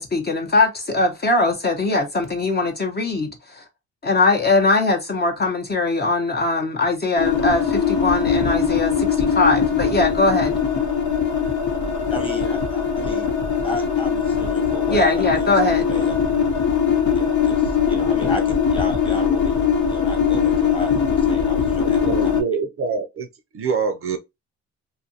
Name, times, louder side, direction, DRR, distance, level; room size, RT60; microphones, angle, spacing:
voice 1, 0.0-3.6 4.0-10.5 14.9-15.9, left 2 dB, 35° left, 0.7 m, -21 dB
sound 1, 7.2-22.4, left 7 dB, 70° left, 0.9 m, -21 dB
voice 2, 12.1-13.3 13.6-16.1 17.1-22.3, left 1 dB, 15° left, 1.2 m, -34 dB
voice 3, 21.8-23.3 23.5-24.2, right 5 dB, 45° right, 0.5 m, -25 dB
2.7 x 2.4 x 2.7 m
cardioid pair, 90°, 30 cm